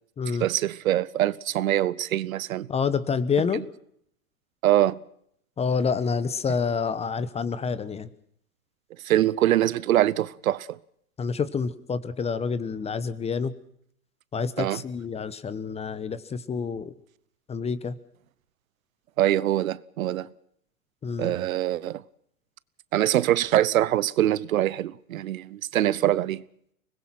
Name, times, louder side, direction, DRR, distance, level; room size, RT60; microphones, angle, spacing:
voice 1, 0.4-2.7 3.5-3.6 4.6-5.0 9.0-10.8 14.6-14.8 19.2-20.3 21.2-22.0 22.9-26.4, right 13 dB, 70° right, 1.0 m, -24 dB
voice 2, 2.7-3.6 5.6-8.1 11.2-13.5 14.3-16.9 17.5-18.0 21.0-21.3, left 5 dB, 15° left, 1.1 m, -28 dB
24.5 x 20.5 x 6.0 m
hypercardioid pair, 120°, 43 cm